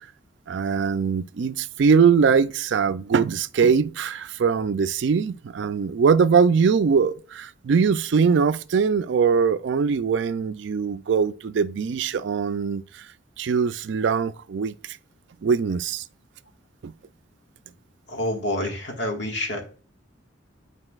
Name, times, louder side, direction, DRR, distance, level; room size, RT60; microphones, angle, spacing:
voice 1, 0.5-12.8 13.4-14.7 15.4-16.0 16.8-16.9, right 6 dB, 65° right, 0.4 m, -21 dB
voice 2, 18.1-19.6, left 1 dB, 70° left, 1.6 m, -27 dB
9.7 x 4.7 x 2.4 m
head